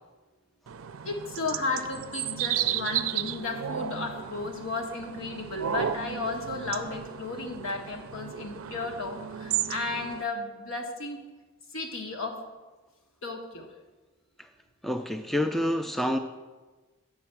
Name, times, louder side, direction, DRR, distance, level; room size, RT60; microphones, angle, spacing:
sound 1, 0.7-10.2, right 9 dB, 75° right, 0.4 m, -34 dB
voice 1, 1.0-11.2 11.7-12.4 13.2-13.7, left 3 dB, 70° left, 2 dB, 1.3 m, -34 dB
voice 2, 14.8-16.2, equal, ahead, 7 dB, 0.3 m, -27 dB
8.3 x 5.5 x 7.3 m, 1.2 s
head